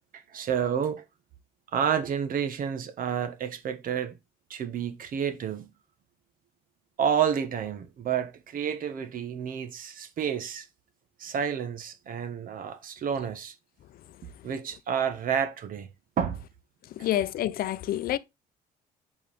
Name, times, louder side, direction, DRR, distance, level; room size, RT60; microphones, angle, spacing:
voice 1, 0.3-1.0 1.7-4.1 4.5-5.7 7.0-10.6 11.2-13.5 14.4-15.9 16.2-16.4 17.0-17.2, right 8 dB, 55° right, 1.4 m, -30 dB
voice 2, 17.0-18.2, left 12 dB, 60° left, 0.7 m, -28 dB
8.0 x 4.9 x 3.7 m
cardioid pair, 110°, 17 cm